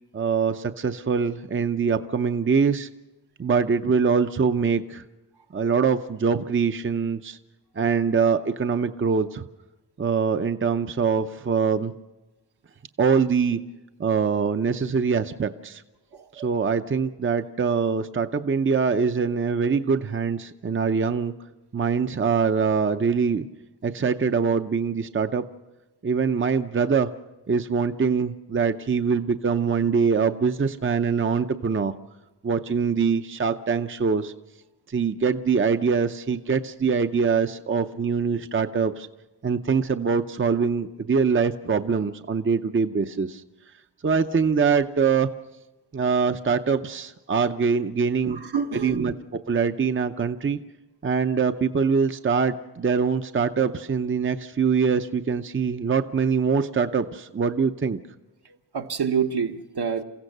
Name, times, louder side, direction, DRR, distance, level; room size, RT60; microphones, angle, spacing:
voice 1, 0.1-2.9 3.4-5.0 5.5-7.4 7.8-9.4 10.0-11.9 13.0-13.6 14.0-15.8 16.4-21.3 21.7-23.5 23.8-25.4 26.0-27.1 27.5-31.9 32.4-34.3 34.9-39.1 39.4-43.4 44.0-45.3 45.9-48.4 48.7-49.1 49.5-50.6 51.0-58.0, right 5 dB, 30° right, 8 dB, 0.6 m, -23 dB
voice 2, 16.1-16.5 48.2-49.1 58.7-60.0, right 6 dB, 70° right, 5 dB, 1.2 m, -27 dB
28.5 x 15.5 x 6.6 m, 1.1 s
wide cardioid pair, 115°, 41 cm